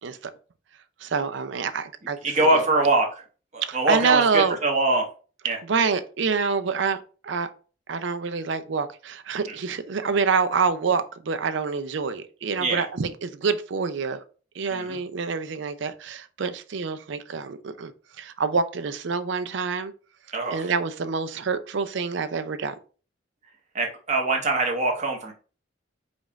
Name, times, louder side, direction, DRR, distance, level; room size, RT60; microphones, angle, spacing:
voice 1, 1.0-2.7 3.6-4.6 5.6-7.5 7.9-14.2 14.5-17.9 18.2-19.9 20.5-22.7, right 5 dB, 65° right, 0.5 m, -26 dB
voice 2, 2.2-3.1 3.5-5.0 5.4-5.6 12.6-12.8 14.7-14.9 20.3-20.6 23.7-25.3, right 2 dB, 35° right, 1.1 m, -23 dB
5.2 x 2.5 x 3.9 m
head